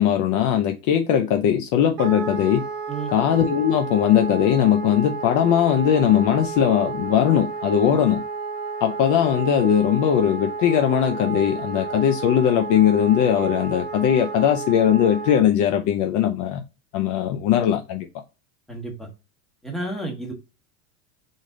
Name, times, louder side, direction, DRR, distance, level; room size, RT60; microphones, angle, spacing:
voice 1, 0.0-2.6 3.1-8.2 8.8-16.6 16.9-18.1, left 9 dB, 40° left, 0.6 m, -20 dB
Wind instrument woodwind instrument, 2.0-15.5, right 4 dB, 60° right, 1.3 m, -31 dB
voice 2, 18.7-19.1 19.6-20.3, right 2 dB, ahead, 1.3 m, -31 dB
3.9 x 3.4 x 3.7 m
supercardioid pair, 120°, 46 cm